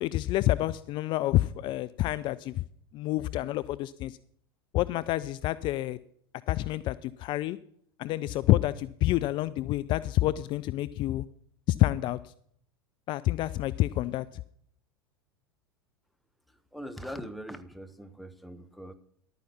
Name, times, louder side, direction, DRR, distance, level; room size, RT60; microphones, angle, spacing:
voice 1, 0.0-2.6 2.9-4.2 4.7-6.0 6.5-7.6 8.0-11.2 11.7-12.2 13.1-14.3, left 16 dB, 40° left, 16 dB, 0.5 m, -28 dB
voice 2, 16.5-18.9, equal, ahead, 8 dB, 1.2 m, -42 dB
12.0 x 9.2 x 5.5 m, 0.65 s
figure-of-eight pair, 85°, 13 cm